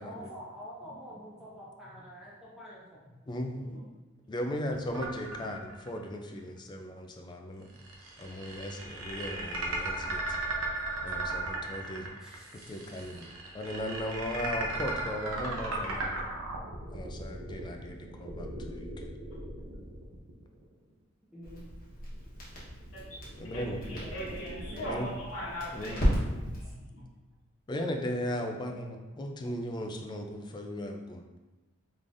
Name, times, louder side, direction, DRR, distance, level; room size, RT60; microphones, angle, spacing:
voice 1, 0.0-3.0 12.2-13.1 21.3-21.6 23.5-25.2, equal, 5° right, -8 dB, 0.7 m, -47 dB
voice 2, 3.3-3.8 4.3-7.7 8.2-10.4 11.0-12.2 12.5-16.3 16.9-19.1 23.4-24.0 24.8-25.1 25.7-26.6 27.7-31.2, equal, 20° left, 3 dB, 0.3 m, -37 dB
sound 1, 4.9-6.0 6.4-6.5 7.7-20.7 22.0-24.7, right 2 dB, 85° right, 0.7 m, -37 dB
Crackle, 21.4-26.7, equal, 45° left, 1.1 m, -35 dB
voice 3, 23.5-26.0 26.5-27.0, equal, 75° left, -7 dB, 1.3 m, -40 dB
3.7 x 3.2 x 2.5 m, 1.1 s
head